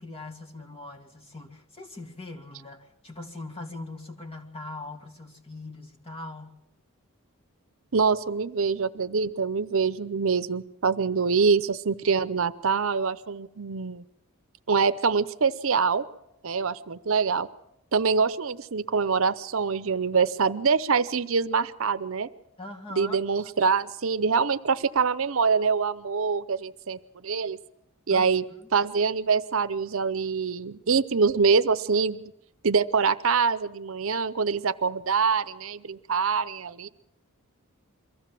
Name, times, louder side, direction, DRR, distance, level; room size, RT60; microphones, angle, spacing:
voice 1, 0.0-6.6 22.6-23.2 28.1-28.7, left 2 dB, 25° left, 2 dB, 2.1 m, -41 dB
voice 2, 7.9-14.0 14.7-16.1 16.4-17.5 17.9-22.3 22.9-27.6 28.1-28.4 28.7-32.3 32.6-36.9, right 5 dB, 70° right, 13 dB, 0.7 m, -25 dB
23.5 x 15.0 x 7.6 m, 0.83 s
head